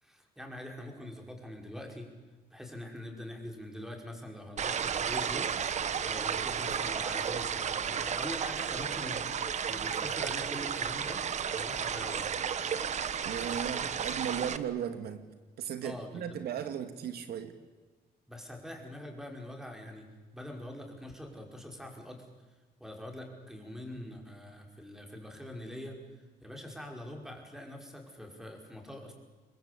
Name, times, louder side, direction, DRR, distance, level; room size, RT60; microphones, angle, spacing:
voice 1, 0.0-2.1 2.5-5.5 6.0-11.2 11.5-12.3 15.8-16.4 18.3-20.1 20.3-22.2 22.8-29.1, left 1 dB, 5° right, 2 dB, 5.5 m, -44 dB
sound 1, 4.6-14.6, right 7 dB, 45° right, 1.3 m, -33 dB
voice 2, 13.2-15.2 15.6-17.5, right 8 dB, 80° right, 9 dB, 2.2 m, -36 dB
28.5 x 22.0 x 8.5 m, 1.3 s
cardioid pair, 135°, 16 cm